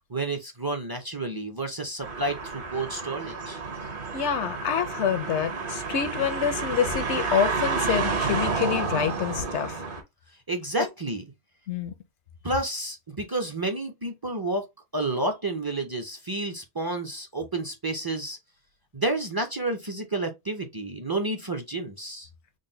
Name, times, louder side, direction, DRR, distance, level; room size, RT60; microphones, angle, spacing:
voice 1, 0.1-3.6 10.5-11.2 12.4-14.6 14.9-18.4 18.9-22.3, right 2 dB, 30° right, 0.4 m, -30 dB
sound 1, 2.0-10.0, right 4 dB, 55° right, 1.0 m, -30 dB
voice 2, 4.1-9.8 11.7-11.9, left 7 dB, 90° left, 1.0 m, -27 dB
3.9 x 2.1 x 3.8 m
omnidirectional pair, 1.1 m